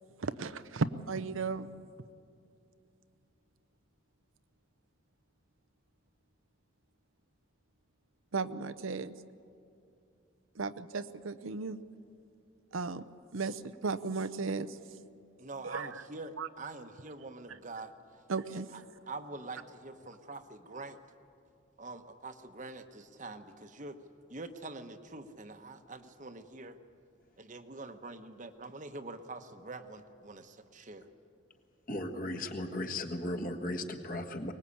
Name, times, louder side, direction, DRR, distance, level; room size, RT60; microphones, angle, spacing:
voice 1, 0.2-1.7 8.3-9.1 10.6-11.8 12.7-13.1 13.3-14.8 15.6-16.0 16.4-16.5 17.5-17.6 18.3-18.8, right 4 dB, 80° right, 12 dB, 0.7 m, -35 dB
voice 2, 15.4-17.9 18.5-18.6 19.1-21.0 21.8-24.0 24.3-26.8 27.4-31.1, right 2 dB, 40° right, 8 dB, 1.0 m, -45 dB
voice 3, 31.9-34.5, left 1 dB, 40° left, 3 dB, 1.6 m, -36 dB
23.5 x 20.0 x 8.5 m, 2.5 s
head